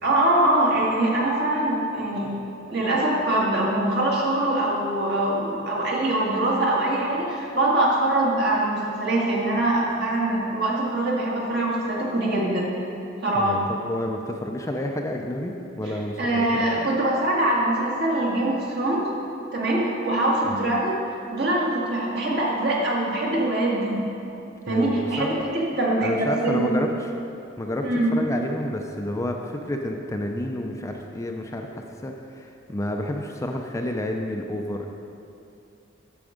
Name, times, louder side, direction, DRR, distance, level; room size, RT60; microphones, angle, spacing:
voice 1, 0.0-2.3 2.7-12.6 13.2-13.6 16.2-19.0 19.5-21.0 21.3-24.0 24.7-26.8 27.8-28.1, right 1 dB, 55° right, -4 dB, 1.8 m, -23 dB
voice 2, 13.3-16.9 20.5-20.6 24.7-25.3 26.0-27.1 27.6-34.9, left 1 dB, 15° left, 2 dB, 0.4 m, -30 dB
8.9 x 7.0 x 5.0 m, 2.8 s
head